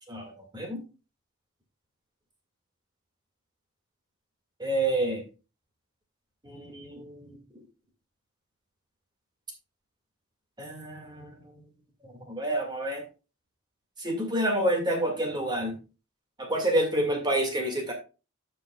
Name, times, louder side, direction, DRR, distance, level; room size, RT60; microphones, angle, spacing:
voice 1, 0.1-0.8 4.6-5.2 6.4-7.4 10.6-11.5 12.3-13.0 14.0-15.8 16.4-17.9, right 1 dB, 20° right, 2 dB, 1.9 m, -28 dB
15.5 x 5.4 x 2.3 m, 0.30 s
head